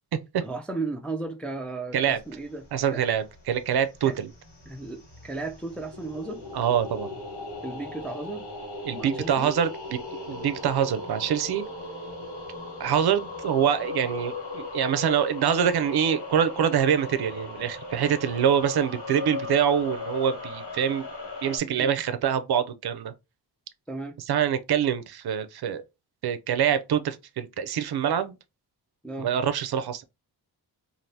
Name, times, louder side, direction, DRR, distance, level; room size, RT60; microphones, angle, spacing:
voice 1, 0.4-2.6 2.9-3.0 4.0-4.1 4.7-6.4 7.6-8.5 8.9-9.5 21.8-22.0 23.9-24.2 29.0-29.3, right 3 dB, 5° left, 0.3 m, -35 dB
sound 1, 2.1-2.9 3.2-21.6, left 3 dB, 65° left, 1.7 m, -38 dB
voice 2, 2.7-4.3 6.5-7.1 8.8-10.0 10.3-11.6 12.8-21.1 21.4-23.1 24.3-25.8 26.2-28.4 29.2-30.0, right 8 dB, 60° right, 0.5 m, -25 dB
2.6 x 2.6 x 3.3 m
wide cardioid pair, 115°, 43 cm